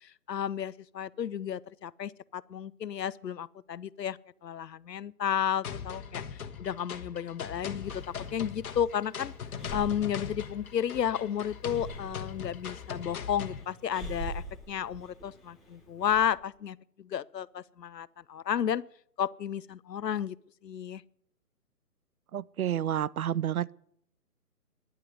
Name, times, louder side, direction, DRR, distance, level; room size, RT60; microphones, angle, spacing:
voice 1, 0.0-7.9 8.3-9.3 9.7-18.8 19.2-20.4 20.6-21.0, left 9 dB, 85° left, 0.7 m, -32 dB
sound 1, 5.6-13.6, left 7 dB, 60° left, 1.4 m, -40 dB
Breathing, 7.8-16.3, right 1 dB, ahead, 1.1 m, -45 dB
voice 2, 22.3-23.7, right 10 dB, 65° right, 0.5 m, -30 dB
10.5 x 10.5 x 8.0 m
figure-of-eight pair, 145°, 48 cm